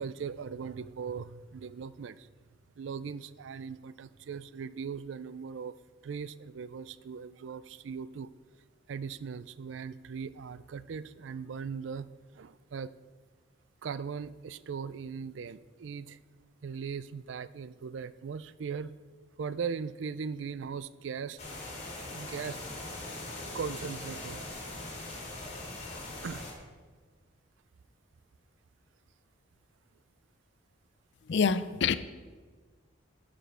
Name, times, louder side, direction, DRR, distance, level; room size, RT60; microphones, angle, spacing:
voice 1, 0.0-2.3 2.8-5.8 6.0-8.3 8.9-12.9 13.8-16.2 16.6-18.9 19.4-21.4 22.1-22.6 23.5-24.5 26.2-26.5, right 6 dB, 70° right, 16 dB, 0.4 m, -39 dB
sound 1, 21.4-26.5, left 2 dB, 35° left, 2.4 m, -41 dB
voice 2, 31.3-32.0, left 5 dB, 60° left, 14 dB, 0.4 m, -26 dB
11.5 x 5.1 x 6.0 m, 1.4 s
head